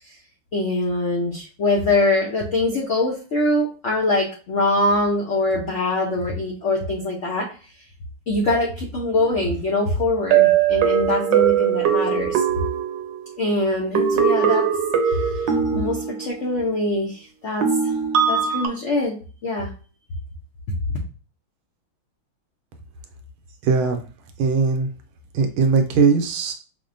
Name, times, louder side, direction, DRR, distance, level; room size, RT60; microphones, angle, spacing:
voice 1, 0.5-7.5 8.3-12.4 13.4-14.6 15.0-17.9 18.3-19.2 19.4-19.7, left 2 dB, 85° left, -1 dB, 0.6 m, -23 dB
sound 1, 9.2-9.3 10.3-13.5 13.9-16.5 17.6-18.7, right 8 dB, 70° right, 1.2 m, -20 dB
voice 2, 23.6-24.0 24.4-24.9 25.3-26.5, right 4 dB, 85° right, 5 dB, 1.5 m, -19 dB
5.6 x 2.1 x 2.5 m, 0.37 s
omnidirectional pair, 2.3 m